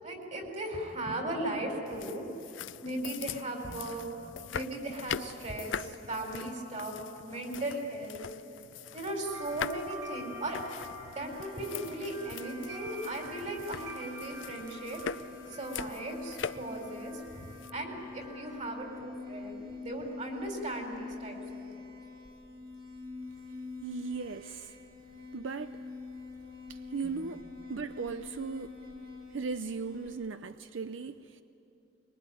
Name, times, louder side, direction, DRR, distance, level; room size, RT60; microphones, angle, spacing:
voice 1, 0.0-2.3 2.8-4.2 4.5-7.0 7.2-8.2 8.9-10.6 11.1-15.0 15.5-21.8 27.0-27.2, right 1 dB, 40° right, 4.5 m, -37 dB
sound 1, 1.9-17.7, left 7 dB, 80° left, 0.5 m, -42 dB
sound 2, 9.3-18.7, equal, 15° right, 2.4 m, -48 dB
sound 3, 11.2-30.2, left 3 dB, 55° right, 5.1 m, -46 dB
voice 2, 23.8-24.8 25.3-25.8 26.7-28.8 29.3-31.4, right 4 dB, 85° right, 0.6 m, -38 dB
23.5 x 23.0 x 9.9 m
head